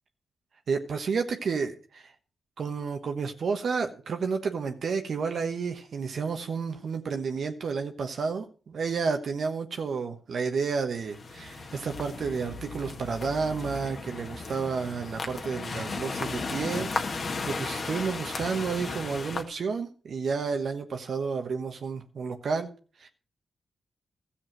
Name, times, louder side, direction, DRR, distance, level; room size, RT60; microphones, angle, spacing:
voice 1, 0.7-2.1 2.6-16.9 17.5-22.7 23.0-23.1, right 5 dB, 70° right, 1.2 m, -31 dB
sound 1, 11.0-19.4, left 3 dB, 55° left, 1.7 m, -35 dB
13.0 x 7.3 x 6.0 m
supercardioid pair, 45°, 0 cm